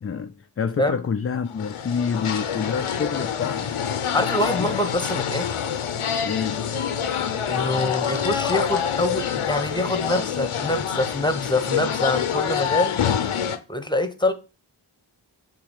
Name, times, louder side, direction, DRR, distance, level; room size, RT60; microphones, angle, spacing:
voice 1, 0.0-3.7 4.6-4.7 6.2-6.6, left 6 dB, 30° left, 0.4 m, -27 dB
sound 1, 1.5-13.6, left 8 dB, 80° left, 0.8 m, -26 dB
voice 2, 4.1-5.4 7.5-13.0 13.7-14.3, left 1 dB, 10° left, 0.9 m, -25 dB
7.1 x 2.9 x 5.2 m
wide cardioid pair, 60°, 49 cm